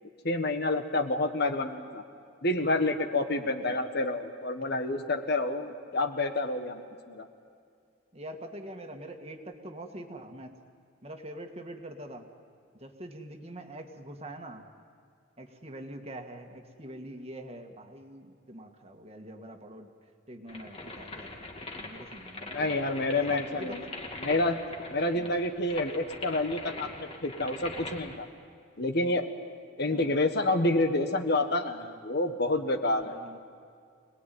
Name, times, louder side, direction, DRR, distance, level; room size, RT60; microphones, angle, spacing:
voice 1, 0.2-2.0 2.4-7.3 22.5-23.8 24.2-24.6 24.9-28.3 28.8-29.3 29.8-33.2, left 2 dB, 55° left, 7 dB, 1.5 m, -28 dB
voice 2, 8.1-10.5 11.0-12.3 12.8-14.6 15.4-19.9 20.3-21.5 21.8-22.7 23.3-23.8 25.1-25.4 29.9-30.1 33.0-33.4, right 1 dB, 30° right, 4 dB, 1.8 m, -44 dB
sound 1, 20.5-28.2, left 2 dB, 30° left, 2.3 m, -42 dB
26.0 x 19.5 x 9.3 m, 2.3 s
head